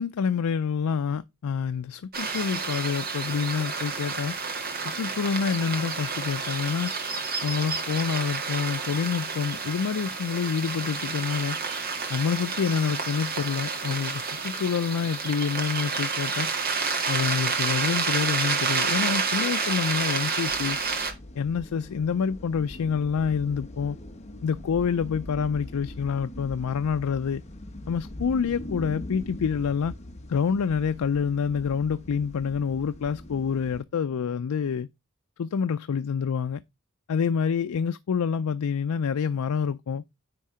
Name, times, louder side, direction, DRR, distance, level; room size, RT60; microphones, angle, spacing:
voice 1, 0.0-4.4 4.8-6.9 7.4-11.6 12.1-16.5 17.1-20.8 21.4-24.0 24.4-27.4 27.9-29.9 30.3-34.9 35.4-36.6 37.1-40.0, left 6 dB, 85° left, 0.4 m, -27 dB
sound 1, 2.1-21.1, right 5 dB, 45° right, 1.7 m, -29 dB
sound 2, 20.5-33.8, left 1 dB, 30° left, 1.0 m, -42 dB
9.9 x 3.7 x 4.8 m
head